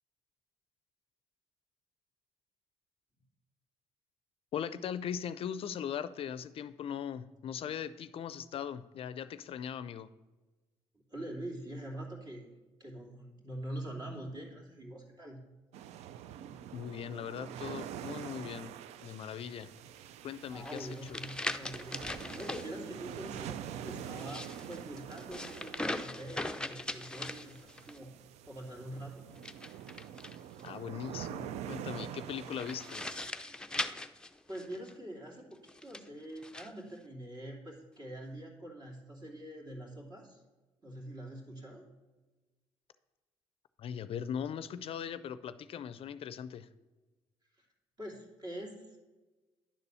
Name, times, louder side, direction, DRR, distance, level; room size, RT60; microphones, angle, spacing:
voice 1, 4.5-10.1 16.7-18.7 19.0-19.7 20.2-21.2 30.6-33.1 43.8-46.7, left 8 dB, 60° left, 14 dB, 0.4 m, -39 dB
voice 2, 11.1-12.5 12.8-15.4 20.5-29.3 34.5-40.4 40.8-41.8 47.5-47.7 48.0-49.0, right 1 dB, 40° right, -1 dB, 2.8 m, -44 dB
sound 1, 15.7-33.3, right 10 dB, 85° right, 0.4 m, -45 dB
sound 2, 20.6-22.7 24.1-28.0 29.4-30.7 32.5-34.9 35.7-36.7, left 2 dB, 10° left, 0.5 m, -40 dB
10.5 x 4.1 x 6.8 m, 1.2 s
cardioid pair, 80°, 11 cm